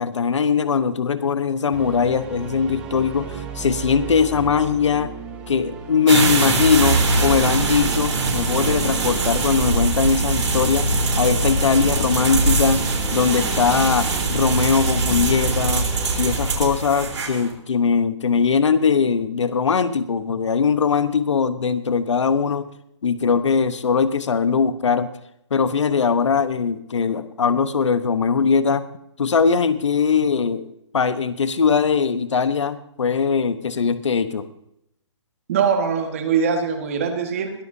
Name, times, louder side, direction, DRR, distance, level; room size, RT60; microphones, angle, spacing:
voice 1, 0.0-5.1 5.5-10.9 11.2-12.8 13.1-15.9 16.2-22.7 23.0-25.1 25.5-28.8 29.2-30.7 30.9-34.5, left 6 dB, 80° left, 12 dB, 1.0 m, -20 dB
sound 1, 1.7-16.5, right 5 dB, 5° right, 0.9 m, -35 dB
sound 2, 6.1-17.5, right 3 dB, 75° right, 3.9 m, -22 dB
voice 2, 35.5-37.5, right 6 dB, 30° right, 5 dB, 1.7 m, -22 dB
21.0 x 13.5 x 2.8 m, 0.78 s
hypercardioid pair, 175°, 15 cm